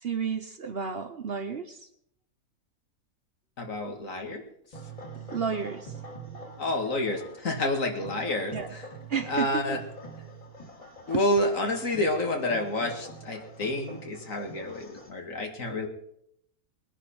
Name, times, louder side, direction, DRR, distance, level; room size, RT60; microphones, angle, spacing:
voice 1, 0.0-1.9 5.3-6.0 8.5-8.7 9.1-9.8 11.1-11.3, right 6 dB, 50° right, 9 dB, 0.9 m, -32 dB
voice 2, 3.6-4.9 6.6-8.9 9.3-9.8 11.1-15.9, left 1 dB, 65° left, 4 dB, 2.3 m, -29 dB
sound 1, 4.7-15.1, right 2 dB, 25° left, 2.2 m, -44 dB
21.0 x 10.0 x 4.4 m, 0.72 s
omnidirectional pair, 1.5 m